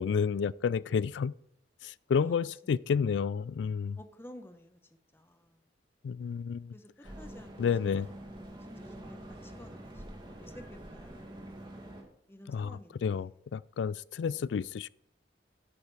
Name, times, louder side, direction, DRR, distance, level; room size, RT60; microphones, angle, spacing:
voice 1, 0.0-1.3 1.8-4.0 6.0-6.7 7.6-8.1 12.5-14.9, left 6 dB, 80° left, 0.3 m, -30 dB
voice 2, 2.2-2.7 4.0-4.8 5.1-5.6 6.7-8.1 8.4-10.0 10.4-11.7 12.3-13.3 14.2-14.5, left 1 dB, 15° left, 0.8 m, -53 dB
sound 1, 7.0-12.0, right 1 dB, 25° right, 2.1 m, -46 dB
11.0 x 8.4 x 4.8 m
head